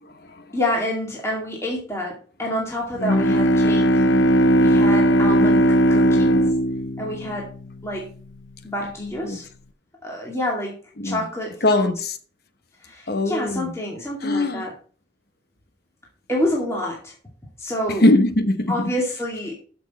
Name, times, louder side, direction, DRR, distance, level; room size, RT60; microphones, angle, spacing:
voice 1, 0.0-0.5 9.2-9.4 11.0-11.3 11.6-12.1 13.1-13.7 14.2-14.7 17.9-18.7, left 2 dB, 55° left, 1.1 m, -21 dB
voice 2, 0.5-4.0 4.6-6.5 7.0-7.5 7.8-8.1 8.6-9.5 10.0-10.8 11.0-12.1 12.8-14.7 16.3-17.1 17.6-18.1 18.7-19.6, left 1 dB, 15° left, 2.2 m, -28 dB
Bowed string instrument, 3.0-8.0, equal, 85° left, 0.8 m, -18 dB
13.0 x 6.1 x 4.2 m
head